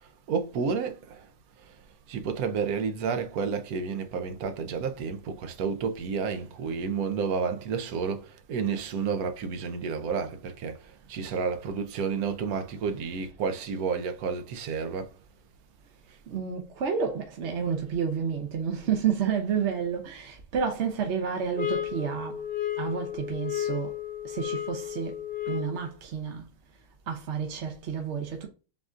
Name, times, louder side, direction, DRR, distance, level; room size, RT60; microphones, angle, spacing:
voice 1, 0.3-1.2 2.1-10.8 11.1-15.1, right 5 dB, 85° right, 1.1 m, -30 dB
voice 2, 12.8-13.3 16.3-22.4 22.8-26.5 27.1-28.5, right 7 dB, 60° right, 0.9 m, -30 dB
sound 1, 21.6-25.9, left 11 dB, 50° left, 0.9 m, -33 dB
7.1 x 2.5 x 2.4 m
omnidirectional pair, 1.5 m